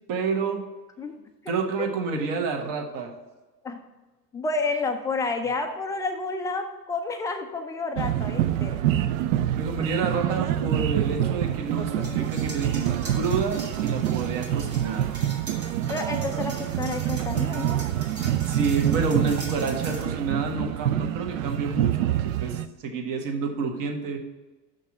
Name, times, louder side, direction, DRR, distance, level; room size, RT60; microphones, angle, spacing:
voice 1, 0.1-0.6 1.5-3.1 9.5-15.1 18.5-24.2, right 4 dB, 40° right, 3 dB, 1.4 m, -29 dB
voice 2, 4.3-8.8 11.8-12.1 15.9-17.8, left 3 dB, 10° left, 5 dB, 0.3 m, -30 dB
sound 1, 8.0-22.7, right 12 dB, 55° right, 0.5 m, -26 dB
sound 2, 12.0-20.0, right 2 dB, 80° right, 2.0 m, -42 dB
6.5 x 5.3 x 6.0 m, 1.2 s
figure-of-eight pair, 80°, 48 cm